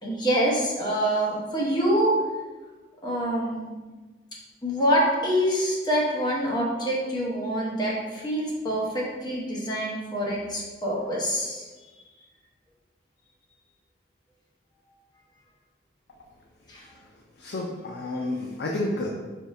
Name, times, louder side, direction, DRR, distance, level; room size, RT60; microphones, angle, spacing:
voice 1, 0.0-2.2 3.0-3.7 4.6-11.7 16.7-16.8, equal, 25° left, -4 dB, 1.0 m, -26 dB
voice 2, 17.4-19.1, left 2 dB, 65° left, -1 dB, 0.5 m, -30 dB
4.5 x 3.5 x 2.7 m, 1.3 s
head